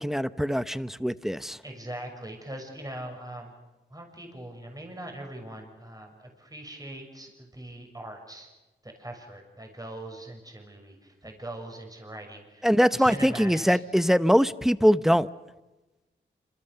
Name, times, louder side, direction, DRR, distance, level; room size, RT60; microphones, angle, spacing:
voice 1, 0.0-1.6 12.6-15.3, equal, ahead, 14 dB, 0.9 m, -22 dB
voice 2, 1.6-3.5 3.9-8.5 8.8-13.8, right 1 dB, 20° right, 2 dB, 6.5 m, -41 dB
28.0 x 26.5 x 6.9 m, 1.1 s
wide cardioid pair, 75°, 20 cm